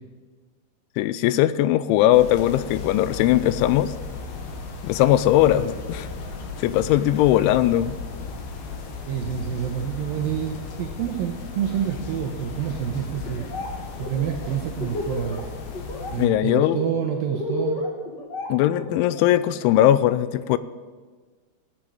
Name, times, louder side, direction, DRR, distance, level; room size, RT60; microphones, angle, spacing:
voice 1, 1.0-3.9 4.8-6.1 6.6-8.0 16.2-16.8 18.5-20.6, left 13 dB, 85° left, 16 dB, 3.0 m, -19 dB
sound 1, 2.1-16.3, left 4 dB, 65° left, 3.0 m, -35 dB
voice 2, 9.1-13.5 14.0-15.5 16.0-17.8, right 9 dB, 90° right, 3 dB, 2.0 m, -28 dB
Laughter, 13.2-13.7 14.0-15.4 15.7-16.1 16.4-19.3, left 2 dB, 40° left, 1.5 m, -31 dB
16.0 x 8.9 x 8.7 m, 1.4 s
omnidirectional pair, 5.4 m